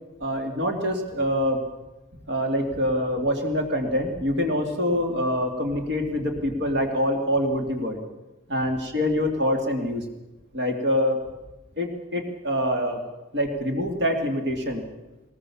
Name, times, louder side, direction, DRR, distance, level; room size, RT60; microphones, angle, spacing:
voice 1, 0.2-1.6 2.3-8.0 8.5-10.1 10.5-11.2 11.8-13.0 13.3-14.8, equal, 55° right, 3 dB, 2.7 m, -25 dB
22.0 x 20.0 x 7.2 m, 1.1 s
head